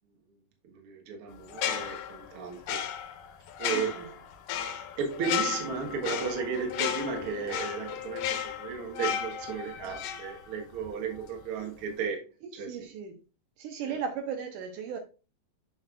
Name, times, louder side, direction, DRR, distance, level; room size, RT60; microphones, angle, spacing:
voice 1, 0.6-2.8 3.6-4.2 5.0-12.9 13.8-14.0, right 5 dB, 55° right, 1.8 m, -34 dB
sound 1, 1.5-10.9 11.2-11.4, left 9 dB, 75° left, 2.3 m, -34 dB
voice 2, 3.7-4.0 12.4-13.2 13.6-15.0, right 7 dB, 75° right, 2.3 m, -36 dB
7.4 x 6.2 x 2.4 m
omnidirectional pair, 4.0 m